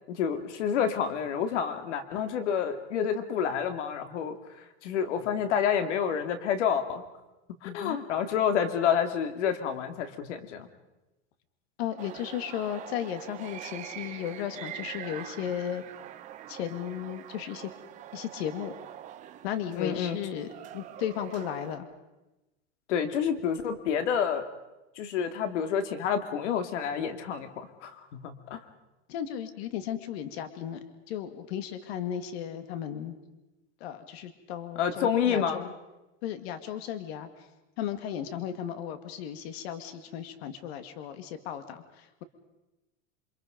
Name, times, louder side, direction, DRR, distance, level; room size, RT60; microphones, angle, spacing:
voice 1, 0.1-4.4 4.8-7.0 7.6-10.7 19.8-20.2 22.9-24.5 25.0-28.6 34.8-35.6, left 8 dB, 75° left, 8 dB, 2.7 m, -29 dB
voice 2, 7.6-8.0 11.8-15.8 16.5-17.7 18.1-18.7 19.4-20.5 20.7-21.9 29.1-30.8 31.1-33.2 33.8-35.7 36.2-37.3 37.8-42.2, left 10 dB, 60° left, 9 dB, 2.2 m, -35 dB
sound 1, 12.0-21.8, right 11 dB, 20° right, 0.9 m, -44 dB
28.5 x 24.5 x 5.2 m, 1.0 s
supercardioid pair, 170°, 36 cm